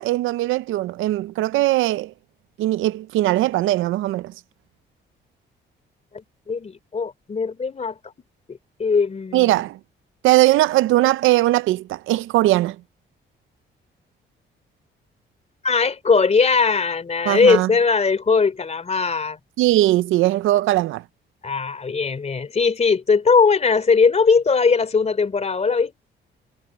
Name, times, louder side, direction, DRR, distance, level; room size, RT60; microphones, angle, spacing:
voice 1, 0.0-2.1 2.6-4.3 9.3-9.8 10.2-12.8 17.3-17.7 19.6-21.0, right 16 dB, 85° right, 0.5 m, -19 dB
voice 2, 6.1-8.0 8.5-9.6 15.6-19.4 21.4-26.0, left 5 dB, 35° left, 3.2 m, -20 dB
cardioid pair, 90°, 20 cm